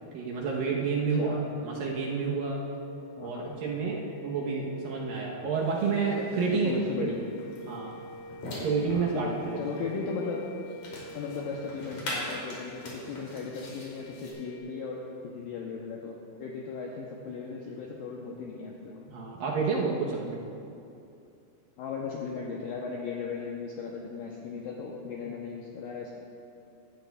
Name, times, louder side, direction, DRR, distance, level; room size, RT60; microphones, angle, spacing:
voice 1, 0.1-2.6 3.2-6.7 7.0-7.1 7.7-7.9 8.6-9.8 19.1-20.4, right 4 dB, 70° right, -2 dB, 2.4 m, -29 dB
sound 1, 1.5-14.6, equal, 25° left, 2.4 m, -46 dB
voice 2, 3.2-3.5 6.5-7.2 8.9-10.4 11.1-19.1 21.8-26.2, left 5 dB, 80° left, -2 dB, 2.1 m, -37 dB
sound 2, 5.6-14.3, left 1 dB, 50° left, 3.6 m, -43 dB
17.5 x 12.0 x 2.3 m, 2.6 s
omnidirectional pair, 4.9 m